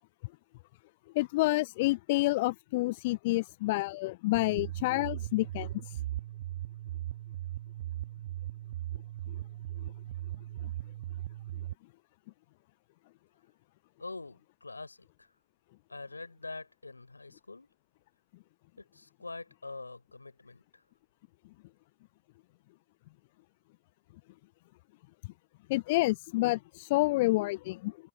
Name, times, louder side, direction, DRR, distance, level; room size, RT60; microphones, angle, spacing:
voice 1, 1.1-6.0 25.7-28.0, left 21 dB, 50° left, 0.6 m, -29 dB
sound 1, 4.3-11.7, right 14 dB, 55° right, 1.8 m, -38 dB
voice 2, 14.0-15.4 15.9-17.7 18.8-20.8, left 3 dB, 80° left, 4.7 m, -45 dB
figure-of-eight pair, 90°, 0 cm